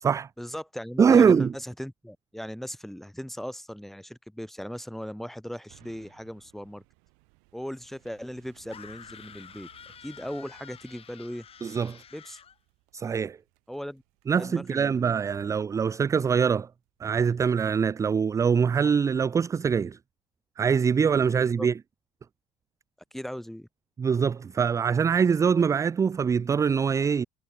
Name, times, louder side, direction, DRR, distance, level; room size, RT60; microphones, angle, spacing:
voice 1, 0.4-6.8 7.5-9.7 10.0-11.5 12.1-12.4 13.7-14.0 14.4-15.1 15.4-15.5 21.4-21.7 23.1-23.7, equal, ahead, 2.7 m, -38 dB
voice 2, 1.0-1.5 11.6-12.0 12.9-13.4 14.3-16.7 17.0-20.0 20.6-21.7 24.0-27.2, right 6 dB, 25° right, 0.3 m, -23 dB
sound 1, 5.7-17.1 17.6-17.7, right 40 dB or more, 75° right, 5.9 m, -62 dB
sound 2, 8.7-12.6, left 8 dB, 45° left, 7.2 m, -49 dB
hypercardioid pair, 60°, 13 cm